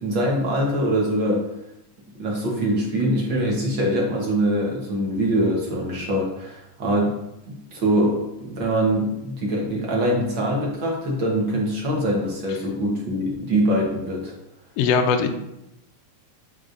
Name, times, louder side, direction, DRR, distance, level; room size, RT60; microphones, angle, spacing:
voice 1, 0.0-1.4 2.2-7.1 7.5-14.3, right 1 dB, 60° right, -2 dB, 1.3 m, -23 dB
voice 2, 14.8-15.3, left 5 dB, 90° left, 5 dB, 1.4 m, -19 dB
7.6 x 5.5 x 2.6 m, 0.86 s
omnidirectional pair, 3.6 m